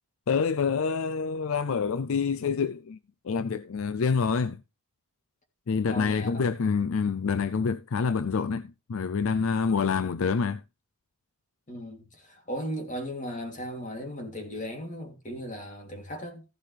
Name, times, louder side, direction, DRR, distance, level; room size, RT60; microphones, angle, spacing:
voice 1, 0.3-3.0 3.2-4.6 5.7-10.6, left 5 dB, 70° left, 0.4 m, -27 dB
voice 2, 5.9-6.5 9.6-9.8 11.7-16.4, equal, 35° left, 2.9 m, -37 dB
15.0 x 7.4 x 3.4 m
head